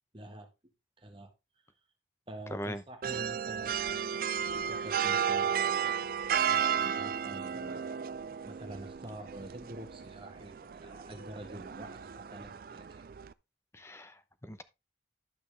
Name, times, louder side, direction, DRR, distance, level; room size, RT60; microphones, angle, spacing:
voice 1, 0.1-0.5 1.0-1.3 2.3-4.1 4.5-6.0 6.5-8.0 8.4-13.0, right 1 dB, 30° right, 1.6 m, -47 dB
voice 2, 2.5-2.8 13.7-14.6, equal, 15° left, 0.8 m, -40 dB
sound 1, 3.0-13.3, right 8 dB, 50° right, 0.4 m, -33 dB
12.0 x 6.0 x 3.4 m
head